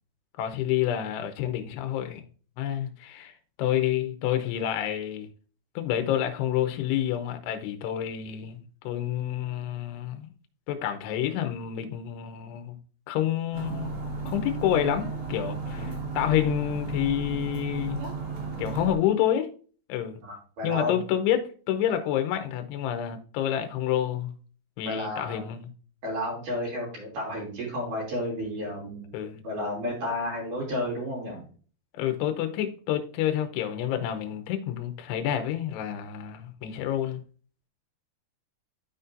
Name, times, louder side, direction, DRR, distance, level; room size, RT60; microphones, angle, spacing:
voice 1, 0.4-2.2 2.6-5.3 5.8-10.3 10.7-12.8 13.1-14.0 14.3-18.0 18.6-19.5 19.9-20.2 20.6-24.3 24.8-25.7 29.1-29.4 31.9-37.2, left 11 dB, 75° left, 2.8 m, -28 dB
sound 1, 13.5-19.0, right 3 dB, 80° right, 4.2 m, -34 dB
voice 2, 20.2-21.0 24.9-25.4 26.0-29.1 29.4-31.5, left 1 dB, 50° right, 4.3 m, -32 dB
12.5 x 4.2 x 2.6 m
omnidirectional pair, 5.1 m